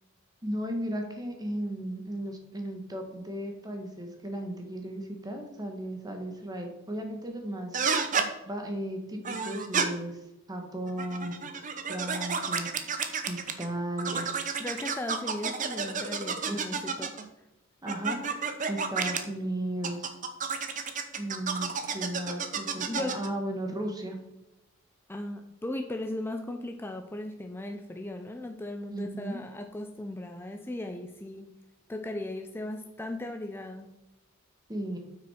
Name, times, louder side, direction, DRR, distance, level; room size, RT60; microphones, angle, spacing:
voice 1, 0.4-7.8 8.5-10.2 10.5-11.4 11.9-12.7 13.3-14.3 16.4-16.6 17.8-20.1 21.2-24.2 28.9-29.4 34.7-35.0, right 1 dB, 20° right, 3 dB, 1.3 m, -35 dB
sound 1, 7.7-8.3 9.2-9.9 10.9-13.7 14.0-17.2 17.9-19.2 19.8-23.3, right 5 dB, 40° right, 0.8 m, -31 dB
voice 2, 14.6-17.1 22.9-23.2 25.1-31.6 31.9-34.0, left 1 dB, 10° left, 5 dB, 0.4 m, -37 dB
8.3 x 6.2 x 4.3 m, 0.95 s
head